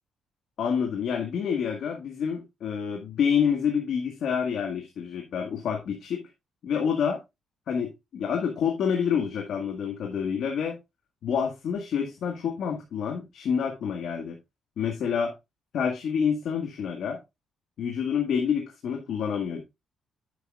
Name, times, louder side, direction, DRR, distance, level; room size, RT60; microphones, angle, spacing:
voice 1, 0.6-6.2 6.6-7.2 7.7-10.8 11.2-14.4 14.8-15.3 15.7-17.2 17.8-19.6, left 7 dB, 70° left, 3 dB, 1.7 m, -28 dB
9.9 x 7.7 x 2.4 m, 0.22 s
cardioid pair, 90°, 0 cm